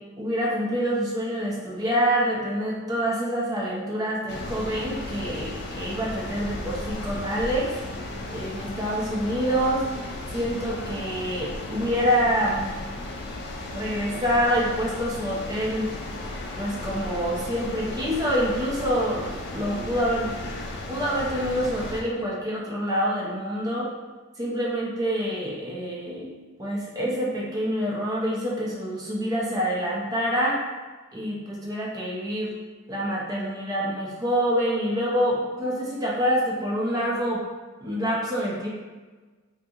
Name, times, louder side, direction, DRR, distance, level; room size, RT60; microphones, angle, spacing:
voice 1, 0.0-7.7 8.3-9.9 10.3-12.7 13.7-15.9 16.6-20.3 20.9-23.9 24.4-26.3 26.6-30.6 31.1-32.6 32.9-37.4 37.8-38.7, equal, 20° right, -4 dB, 0.5 m, -26 dB
sound 1, 4.3-22.0, left 2 dB, 50° left, 0.3 m, -35 dB
2.7 x 2.6 x 2.3 m, 1.3 s
head